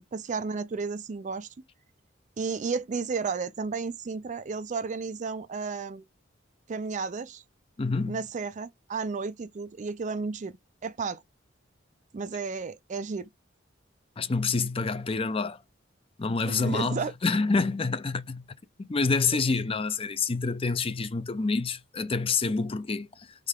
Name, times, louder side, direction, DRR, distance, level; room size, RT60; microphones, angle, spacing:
voice 1, 0.1-1.5 2.4-6.0 6.7-7.4 8.1-10.5 10.8-11.2 12.1-13.3 16.5-17.1, right 4 dB, 40° right, 0.4 m, -32 dB
voice 2, 7.8-8.2 14.2-15.6 16.2-18.4 18.8-23.3, left 4 dB, 30° left, 0.5 m, -27 dB
3.7 x 3.2 x 3.6 m
head